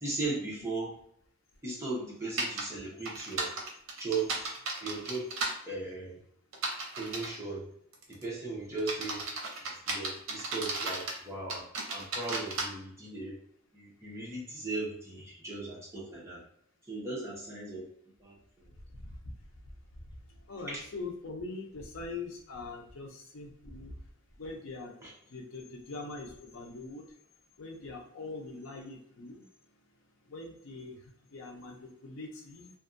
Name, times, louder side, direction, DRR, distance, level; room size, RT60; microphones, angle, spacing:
voice 1, 0.0-1.0 1.6-3.5 4.0-4.3 4.8-5.3 5.7-6.2 7.0-7.7 8.1-9.2 9.6-11.6 11.9-13.4 13.7-16.4 16.9-17.9 18.2-18.4 20.7-20.8 25.0-25.1, right 3 dB, 15° right, -6 dB, 0.8 m, -37 dB
sound 1, 2.4-2.6 3.0-5.5 6.5-7.4 7.9-8.2 8.8-11.2 11.5-12.6, right 3 dB, 80° right, 0.6 m, -34 dB
voice 2, 20.5-23.9 24.4-24.9 25.3-27.0 27.6-29.4 30.3-30.9 31.3-32.7, left 3 dB, 75° left, 2 dB, 0.6 m, -42 dB
2.5 x 2.3 x 2.5 m, 0.68 s
head